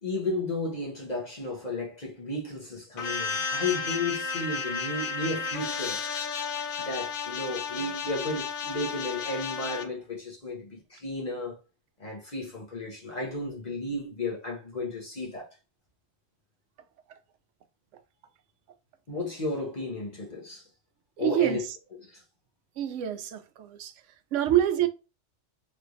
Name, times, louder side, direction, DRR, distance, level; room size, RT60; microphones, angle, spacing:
voice 1, 0.0-6.0 6.8-11.6 12.0-15.5 19.1-20.7 21.2-21.7 22.0-22.2, left 2 dB, 40° left, 1.0 m, -33 dB
sound 1, 3.0-9.9, left 5 dB, 55° left, 0.7 m, -33 dB
voice 2, 21.2-21.8 22.8-23.9 24.3-24.9, right 12 dB, 80° right, 0.9 m, -26 dB
3.3 x 3.1 x 2.5 m
omnidirectional pair, 1.2 m